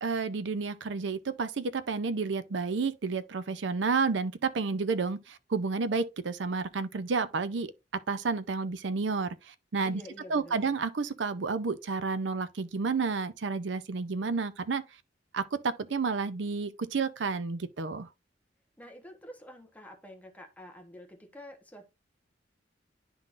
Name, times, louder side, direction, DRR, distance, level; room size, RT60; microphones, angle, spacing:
voice 1, 0.0-7.7 8.1-10.0 10.3-14.8 15.3-18.1, right 4 dB, 75° right, 0.5 m, -31 dB
voice 2, 9.8-10.8 18.8-21.9, equal, 10° left, 1.0 m, -48 dB
11.0 x 3.8 x 2.4 m
head